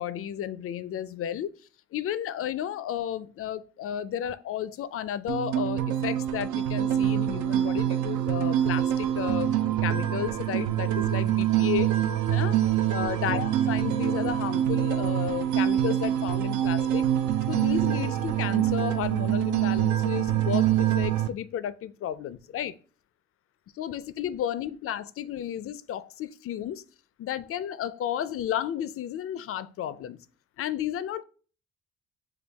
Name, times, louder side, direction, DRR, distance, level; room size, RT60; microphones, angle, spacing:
voice 1, 0.0-1.5 1.9-11.9 12.3-12.6 12.9-17.1 17.5-22.8 23.7-26.8 27.2-30.2 30.6-31.2, left 10 dB, 50° left, 0.4 m, -33 dB
sound 1, 5.3-21.3, right 11 dB, 75° right, 0.5 m, -25 dB
6.3 x 2.3 x 3.3 m
cardioid pair, 90°, 30 cm